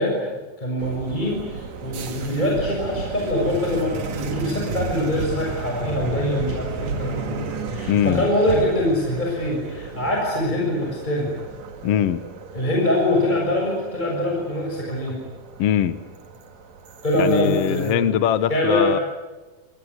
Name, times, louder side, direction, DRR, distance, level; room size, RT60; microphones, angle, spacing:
voice 1, 0.0-11.3 12.5-15.2 17.0-18.0 18.5-19.0, left 1 dB, 10° left, 6.6 m, -23 dB
sound 1, 0.8-17.9, right 5 dB, 50° right, 3.0 m, -34 dB
voice 2, 7.9-8.2 11.8-12.2 15.6-16.0 17.2-19.0, left 10 dB, 80° left, 1.4 m, -21 dB
29.0 x 20.5 x 9.5 m
omnidirectional pair, 4.2 m